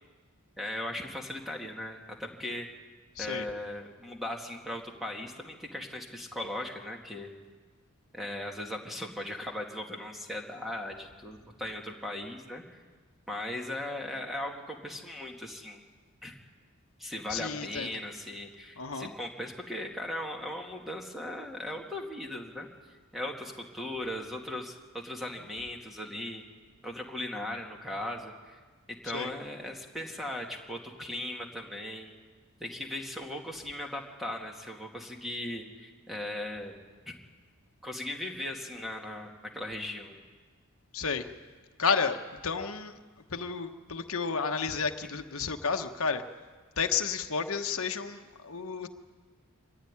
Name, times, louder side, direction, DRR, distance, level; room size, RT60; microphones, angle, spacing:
voice 1, 0.6-2.7 3.2-7.3 8.1-12.8 13.3-15.8 16.2-16.4 17.0-26.5 26.8-28.6 28.9-32.1 32.6-36.7 37.1-37.2 37.8-40.2, left 1 dB, ahead, 1 dB, 2.2 m, -38 dB
voice 2, 3.2-3.5 17.3-17.9 18.8-19.1 29.1-29.3 40.9-41.3 41.8-42.2 42.4-42.9 43.3-46.2 46.8-48.9, left 5 dB, 65° left, 6 dB, 1.2 m, -31 dB
24.5 x 15.0 x 9.9 m, 1.5 s
head